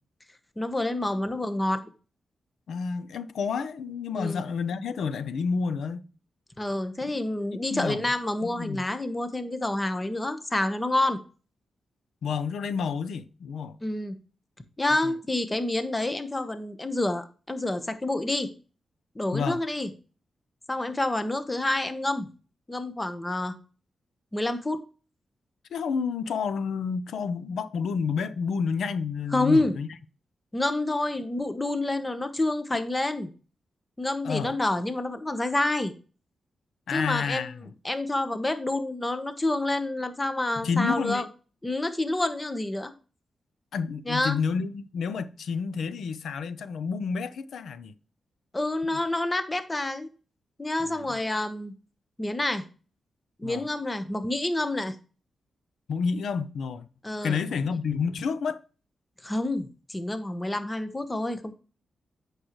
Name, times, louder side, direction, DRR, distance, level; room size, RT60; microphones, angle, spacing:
voice 1, 0.6-1.8 4.2-4.4 6.6-11.2 13.8-14.2 14.8-18.5 19.1-19.9 20.7-22.3 22.7-23.5 24.3-24.8 29.3-29.7 30.5-33.3 34.0-35.9 36.9-37.5 37.8-41.2 41.6-42.9 44.1-44.4 48.5-50.1 50.6-51.7 52.2-52.6 53.4-54.9 57.0-57.4 59.2-61.5, left 2 dB, 20° left, 1.1 m, -28 dB
voice 2, 2.7-6.1 7.0-7.1 7.5-8.1 8.4-8.9 12.2-13.8 15.0-15.1 19.3-19.6 25.7-29.9 34.2-34.5 36.9-37.7 40.6-41.3 43.7-47.9 48.9-49.0 50.8-51.2 53.4-53.7 55.9-56.9 57.2-58.6, left 5 dB, 80° left, 0.6 m, -30 dB
8.7 x 6.5 x 3.1 m
cardioid pair, 80°, 0 cm